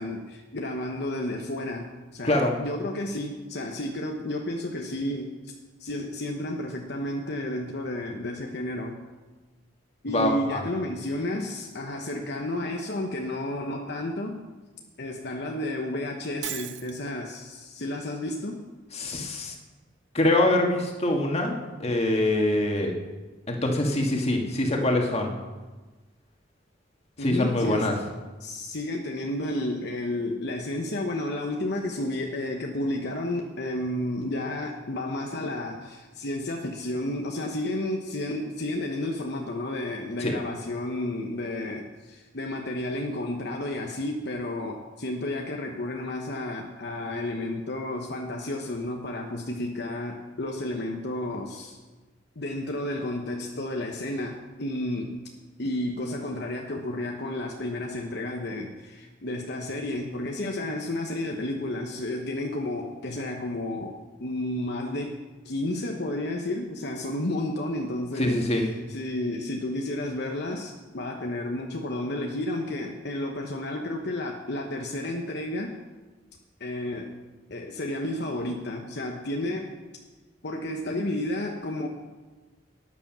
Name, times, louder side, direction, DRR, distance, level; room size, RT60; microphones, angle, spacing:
voice 1, 0.0-5.5 5.8-9.0 10.0-14.4 15.0-18.6 27.2-28.0 28.4-51.8 52.4-55.1 55.6-75.7 76.6-77.1 77.5-79.7 80.4-81.9, left 1 dB, 60° left, 2 dB, 1.1 m, -32 dB
voice 2, 2.2-2.6 10.1-10.6 18.9-19.5 20.1-22.9 23.5-25.3 27.2-27.9 40.2-40.3 68.2-68.6, left 1 dB, 35° left, 1 dB, 1.9 m, -24 dB
Shatter, 16.4-17.0, right 13 dB, 65° right, 0.6 m, -35 dB
13.0 x 9.8 x 6.1 m, 1.2 s
head